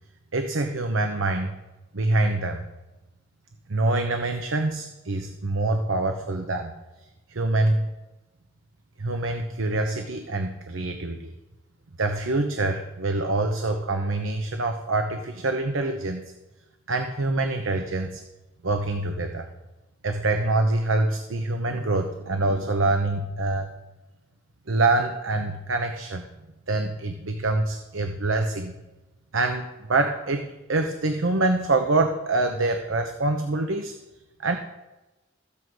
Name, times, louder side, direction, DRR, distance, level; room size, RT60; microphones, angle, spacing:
voice 1, 0.3-1.6 1.9-2.6 3.7-6.7 7.3-7.9 9.0-11.3 12.0-16.2 16.9-18.2 18.6-19.5 20.0-23.7 24.7-26.3 26.7-28.7 29.3-33.9 34.4-34.6, right 2 dB, 85° right, 5 dB, 0.9 m, -25 dB
14.0 x 8.4 x 4.7 m, 1.1 s
head